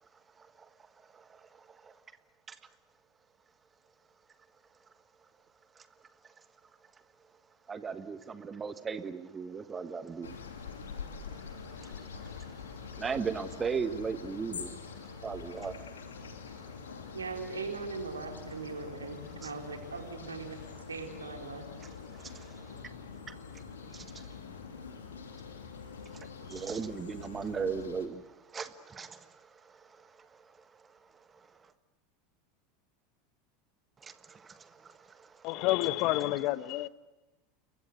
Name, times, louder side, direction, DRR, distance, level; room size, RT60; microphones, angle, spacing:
voice 1, 0.4-2.0 2.5-2.6 5.7-5.9 6.2-6.3 7.7-17.2 19.4-19.5 21.8-23.0 23.2-31.7 34.0-35.7, right 5 dB, 20° right, 1.4 m, -40 dB
sound 1, 10.2-28.1, left 6 dB, 75° left, 2.7 m, -45 dB
voice 2, 17.1-21.7, right 4 dB, 80° right, 3.9 m, -40 dB
voice 3, 35.4-36.9, left 16 dB, 50° left, 1.0 m, -29 dB
29.0 x 23.0 x 8.1 m
figure-of-eight pair, 80°, 0 cm